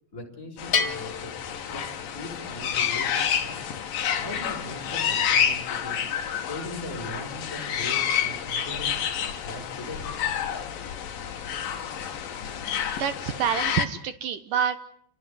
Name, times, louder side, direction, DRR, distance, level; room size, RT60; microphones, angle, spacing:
voice 1, 0.1-1.3 1.7-1.8 2.1-3.7 4.2-6.1 6.3-9.0 9.4-10.1, left 1 dB, 15° left, 1 dB, 6.0 m, -39 dB
sound 1, 0.6-13.9, left 8 dB, 60° left, 3.2 m, -29 dB
Bell, 0.7-2.4, left 5 dB, 40° left, 1.5 m, -30 dB
voice 2, 13.0-14.8, right 8 dB, 70° right, 11 dB, 2.1 m, -27 dB
29.5 x 18.5 x 9.5 m, 0.70 s
omnidirectional pair, 5.2 m